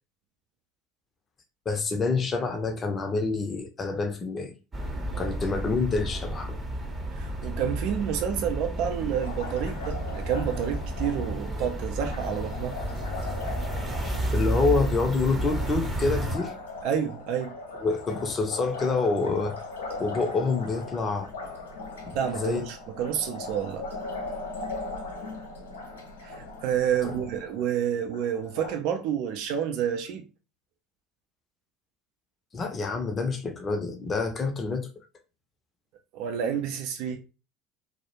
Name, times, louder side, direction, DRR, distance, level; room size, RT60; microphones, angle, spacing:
voice 1, 1.7-4.5 5.2-6.6 14.3-16.5 17.8-19.6 20.0-21.3 22.1-22.7 27.0-27.1 32.5-34.9, left 3 dB, 30° left, 0.6 m, -27 dB
sound 1, 4.7-16.4, right 1 dB, 20° right, 0.7 m, -31 dB
voice 2, 7.1-12.8 16.8-17.6 22.1-23.9 26.2-30.2 36.1-37.2, right 9 dB, 60° right, 0.4 m, -29 dB
Liquid, 9.2-28.7, left 3 dB, 85° left, 0.6 m, -39 dB
2.4 x 2.0 x 2.8 m
hypercardioid pair, 70°, 0 cm